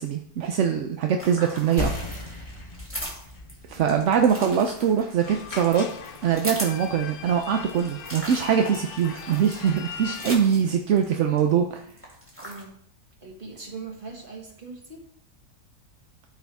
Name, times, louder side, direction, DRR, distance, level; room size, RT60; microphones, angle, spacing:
voice 1, 0.0-1.9 2.2-2.4 3.7-5.9 6.2-11.8, right 8 dB, 65° right, 4 dB, 0.8 m, -23 dB
sound 1, 1.2-11.4 11.7-12.6, equal, 10° right, 2.1 m, -38 dB
sound 2, 1.8-6.9, left 2 dB, 20° left, 0.9 m, -37 dB
voice 2, 3.8-4.1 12.4-12.7 13.2-15.1, right 4 dB, 35° right, 0 dB, 1.8 m, -39 dB
sound 3, 5.3-10.4, left 7 dB, 70° left, 1.2 m, -39 dB
12.5 x 4.7 x 3.5 m, 0.66 s
omnidirectional pair, 1.7 m